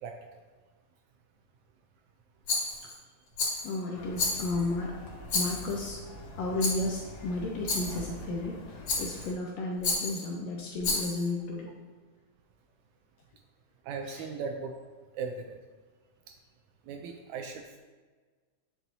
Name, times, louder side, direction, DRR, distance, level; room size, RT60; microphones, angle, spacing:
Rattle, 2.5-3.0 3.4-3.7 4.2-4.7 5.3-5.8 6.6-6.9 7.7-8.1 8.9-9.3 9.8-10.2 10.8-11.3, left 3 dB, 55° left, 2.7 m, -31 dB
voice 1, 3.6-5.0 5.3-6.0 6.4-11.7 14.1-14.3, left 2 dB, 75° left, -1 dB, 1.6 m, -33 dB
sound 1, 3.9-9.3, left 1 dB, 90° left, 3.1 m, -45 dB
voice 2, 13.8-14.8 15.1-15.6 16.9-17.8, right 5 dB, 80° right, 4 dB, 1.8 m, -37 dB
9.5 x 6.0 x 2.7 m, 1.4 s
omnidirectional pair, 3.7 m